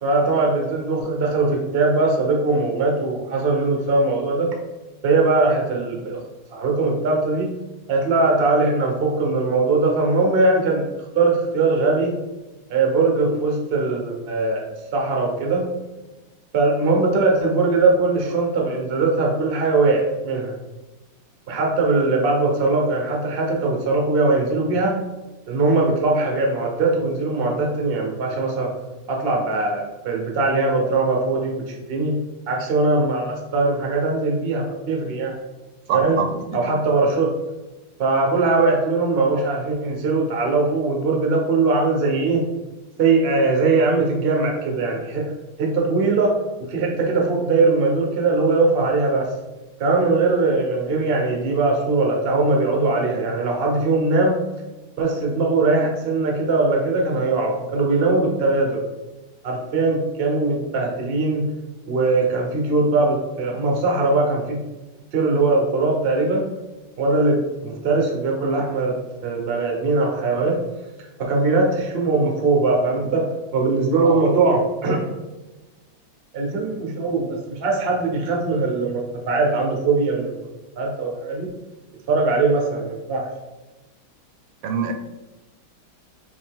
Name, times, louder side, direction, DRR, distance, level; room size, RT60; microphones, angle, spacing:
voice 1, 0.0-4.5 5.0-6.2 6.5-7.5 7.9-10.9 11.1-12.2 12.7-14.6 14.9-15.7 16.5-20.5 21.5-25.0 25.5-28.7 29.1-32.2 32.5-35.3 35.9-36.2 36.5-37.3 38.0-42.5 43.0-45.3 45.6-46.3 46.7-49.3 49.8-54.4 55.0-58.8 59.4-61.5 61.9-64.6 65.1-66.5 67.0-69.0 69.2-70.6 71.2-75.0 76.3-80.5 80.8-81.5 82.1-83.3, right 3 dB, 55° right, 1 dB, 0.6 m, -20 dB
voice 2, 35.9-36.3 74.0-74.2 84.6-84.9, right 6 dB, 75° right, 5 dB, 1.3 m, -24 dB
5.0 x 2.9 x 3.5 m, 1.1 s
omnidirectional pair, 2.3 m